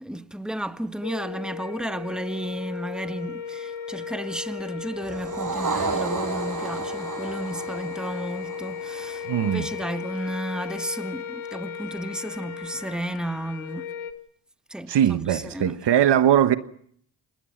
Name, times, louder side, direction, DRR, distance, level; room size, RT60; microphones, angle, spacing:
voice 1, 0.0-13.8 14.7-15.8, right 1 dB, ahead, 1.6 m, -33 dB
sound 1, 1.0-14.1, left 7 dB, 80° left, 1.5 m, -36 dB
sound 2, 1.6-13.0, left 2 dB, 35° left, 6.6 m, -49 dB
sound 3, 5.0-9.6, right 4 dB, 40° right, 7.0 m, -32 dB
voice 2, 9.3-9.7 14.9-16.6, right 10 dB, 60° right, 1.3 m, -20 dB
28.5 x 20.5 x 6.0 m
hypercardioid pair, 45°, 47 cm